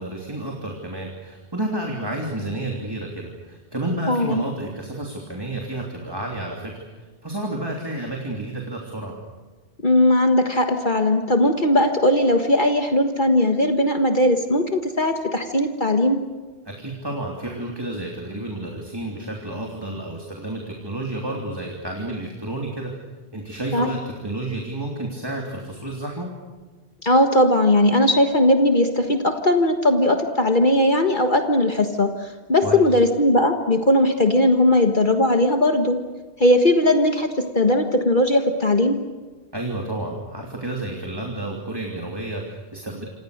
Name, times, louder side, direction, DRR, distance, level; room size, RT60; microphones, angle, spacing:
voice 1, 0.0-6.8 7.2-9.2 16.6-22.9 23.3-26.3 32.6-32.8 39.5-43.1, right 1 dB, 20° right, 0 dB, 3.2 m, -30 dB
voice 2, 4.1-4.4 9.8-16.2 23.7-23.9 27.0-36.0 36.4-39.0, left 1 dB, 45° left, 5 dB, 1.7 m, -18 dB
28.5 x 27.0 x 6.6 m, 1.4 s
omnidirectional pair, 1.2 m